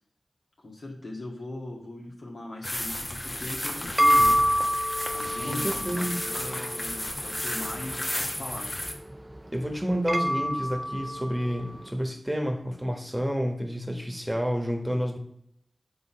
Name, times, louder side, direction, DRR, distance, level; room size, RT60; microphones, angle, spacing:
voice 1, 0.6-4.4 4.8-8.7, left 1 dB, 80° left, -3 dB, 2.0 m, -40 dB
sound 1, 2.6-8.9, left 1 dB, 35° left, 1.2 m, -33 dB
sound 2, 3.4-11.9, equal, 30° right, 0.5 m, -28 dB
voice 2, 5.4-6.2 9.5-15.2, equal, 10° right, 2 dB, 1.5 m, -29 dB
7.0 x 4.0 x 5.8 m, 0.71 s
cardioid pair, 45°, 0 cm